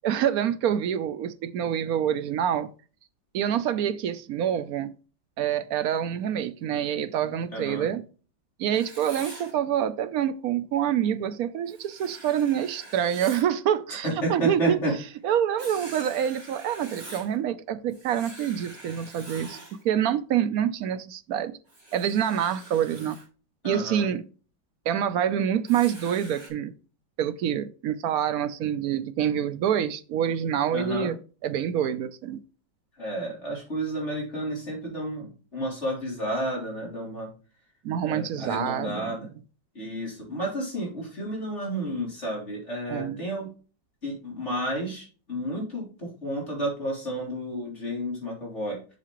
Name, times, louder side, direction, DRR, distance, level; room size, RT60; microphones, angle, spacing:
voice 1, 0.0-2.7 3.3-4.9 5.4-8.0 8.6-14.8 15.2-19.6 19.8-21.6 21.9-23.2 23.6-24.2 24.9-26.7 27.2-31.2 31.4-32.4 37.8-39.3 42.9-43.2, right 9 dB, 65° right, 0.9 m, -26 dB
voice 2, 7.5-7.9 14.0-14.9 23.6-24.1 30.7-31.1 33.0-37.3 38.0-39.3 39.7-43.5 44.0-48.8, right 1 dB, 35° left, 3.8 m, -31 dB
Writing, 8.7-9.5 11.7-13.5 15.6-17.3 17.9-19.8 21.7-23.2 25.7-26.5, right 2 dB, 30° right, 2.8 m, -45 dB
7.5 x 6.7 x 3.1 m
omnidirectional pair, 2.1 m